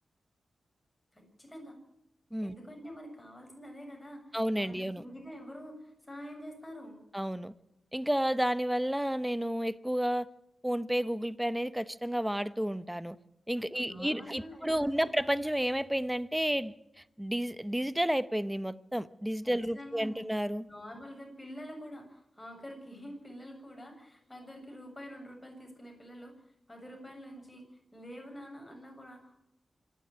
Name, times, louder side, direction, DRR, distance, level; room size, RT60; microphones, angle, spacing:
voice 1, 1.1-1.8 2.4-7.0 13.6-15.1 19.4-20.3 20.7-26.3 26.7-29.4, equal, 15° left, 7.6 m, -47 dB
voice 2, 4.3-5.0 7.1-7.5 7.9-10.3 10.6-13.2 13.5-16.7 17.2-20.7, equal, 5° right, 0.9 m, -31 dB
26.0 x 11.0 x 10.0 m
wide cardioid pair, 90°, 0 cm